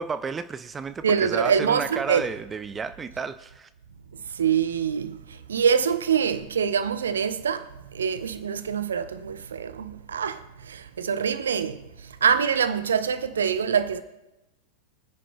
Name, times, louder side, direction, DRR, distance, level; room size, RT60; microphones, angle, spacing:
voice 1, 0.0-3.7, right 5 dB, 20° right, 0.4 m, -32 dB
voice 2, 1.0-2.2 4.3-14.0, right 7 dB, 65° right, 0.7 m, -25 dB
25.0 x 10.0 x 2.3 m
figure-of-eight pair, 90°, 0 cm